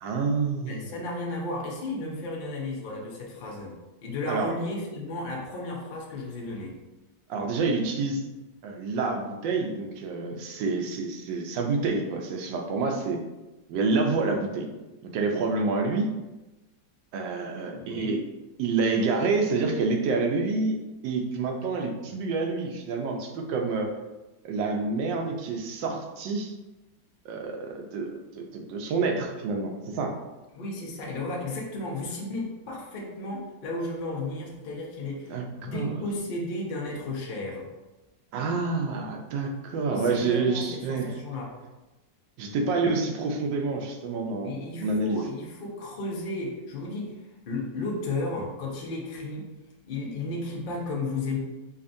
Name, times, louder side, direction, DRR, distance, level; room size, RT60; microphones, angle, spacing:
voice 1, 0.0-1.0 4.3-4.5 7.3-8.2 8.6-13.2 13.7-14.7 15.0-16.2 17.1-18.2 18.6-23.9 24.4-26.5 27.2-30.2 35.3-36.0 38.3-41.1 42.4-44.5 44.8-45.2, right 3 dB, 80° right, 2 dB, 1.2 m, -28 dB
voice 2, 0.7-3.7 4.0-6.7 17.7-18.2 30.5-37.7 39.9-41.6 44.4-47.2 47.5-49.5 49.8-51.4, left 2 dB, 70° left, -2 dB, 0.5 m, -34 dB
5.1 x 2.4 x 2.5 m, 1.1 s
omnidirectional pair, 2.0 m